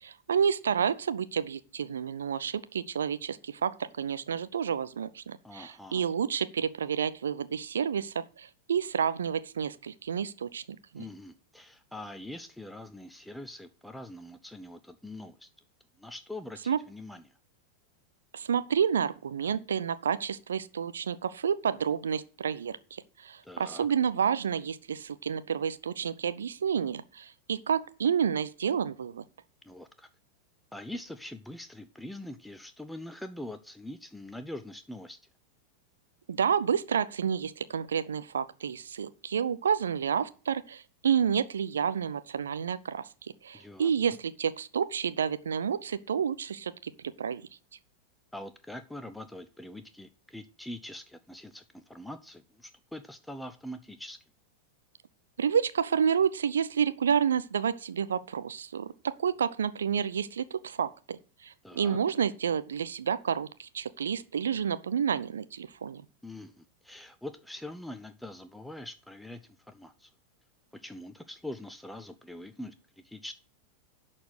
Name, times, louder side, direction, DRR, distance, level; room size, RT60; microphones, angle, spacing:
voice 1, 0.0-10.6 10.9-11.0 16.7-16.8 18.3-29.2 36.3-43.1 43.4-47.4 55.4-66.0, right 7 dB, 65° right, 0.7 m, -30 dB
voice 2, 5.4-6.1 10.9-15.5 16.0-17.4 23.4-23.9 29.6-30.1 30.7-35.2 43.5-43.9 48.3-54.2 61.6-62.0 66.2-70.1 70.7-73.3, left 1 dB, 5° left, 0.7 m, -43 dB
11.5 x 4.4 x 7.9 m
figure-of-eight pair, 90°, 0 cm